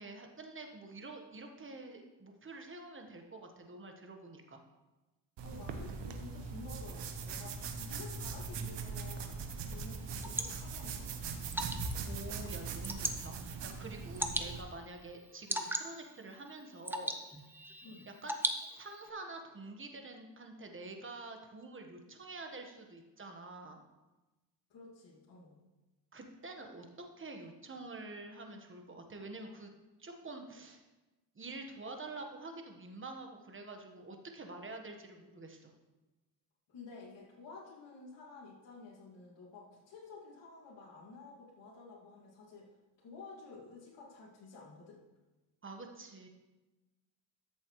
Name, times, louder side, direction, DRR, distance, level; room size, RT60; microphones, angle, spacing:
voice 1, 0.0-4.6 12.1-17.2 18.1-18.3 18.7-23.9 26.1-26.9 27.2-29.7 30.0-30.8 31.3-35.7 45.6-46.3, right 2 dB, 25° right, 4 dB, 1.3 m, -47 dB
voice 2, 5.4-11.3 17.8-18.1 24.7-25.6 36.7-42.7 43.0-45.0, left 3 dB, 70° left, -5 dB, 2.4 m, -52 dB
sound 1, 5.4-14.6, right 4 dB, 70° right, 1.1 m, -41 dB
Water / Drip, 9.7-19.1, right 1 dB, 5° right, 0.7 m, -41 dB
13.5 x 7.1 x 3.1 m, 1.1 s
cardioid pair, 95°, 45 cm